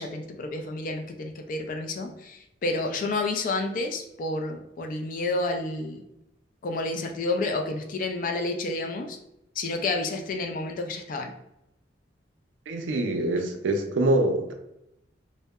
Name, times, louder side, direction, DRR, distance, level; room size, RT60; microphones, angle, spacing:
voice 1, 0.0-6.0 6.6-9.2 9.6-11.3, left 2 dB, 45° left, 4 dB, 0.3 m, -30 dB
voice 2, 12.7-14.5, right 1 dB, 90° right, 5 dB, 0.4 m, -25 dB
2.6 x 2.0 x 2.3 m, 0.85 s
head